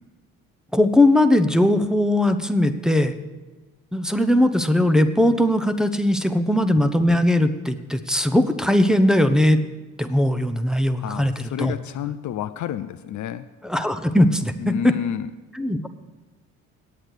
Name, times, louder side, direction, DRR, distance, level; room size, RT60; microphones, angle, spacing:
voice 1, 0.7-3.1 3.9-9.6 10.0-11.8 13.6-14.9 15.5-15.9, left 1 dB, ahead, 8 dB, 0.8 m, -19 dB
voice 2, 11.0-13.5 14.6-15.3, left 10 dB, 50° left, 11 dB, 0.6 m, -30 dB
8.9 x 8.4 x 8.0 m, 1.2 s
hypercardioid pair, 55°, 38 cm